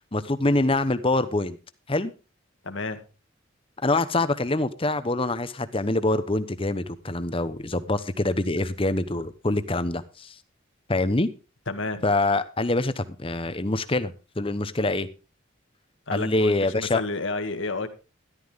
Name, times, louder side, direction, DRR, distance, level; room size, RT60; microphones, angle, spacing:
voice 1, 0.1-1.6 1.9-2.1 3.8-10.3 10.9-11.3 12.0-15.1 16.1-17.0, left 2 dB, 25° left, 13 dB, 0.9 m, -25 dB
voice 2, 2.6-3.0 11.7-12.0 16.1-17.9, left 3 dB, 65° left, 8 dB, 1.8 m, -30 dB
13.5 x 12.5 x 3.7 m, 0.32 s
head